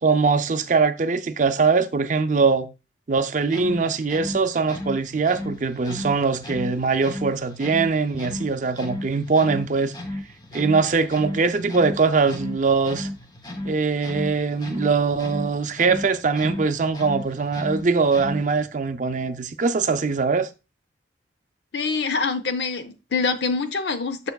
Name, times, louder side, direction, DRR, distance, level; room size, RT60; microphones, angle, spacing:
voice 1, 0.0-2.7 3.1-9.9 10.5-13.1 13.6-20.5, right 4 dB, 45° right, 0.5 m, -22 dB
sound 1, 3.4-18.7, left 1 dB, 25° left, 0.8 m, -35 dB
voice 2, 21.7-24.3, left 4 dB, 70° left, 0.7 m, -25 dB
6.8 x 6.8 x 2.3 m
head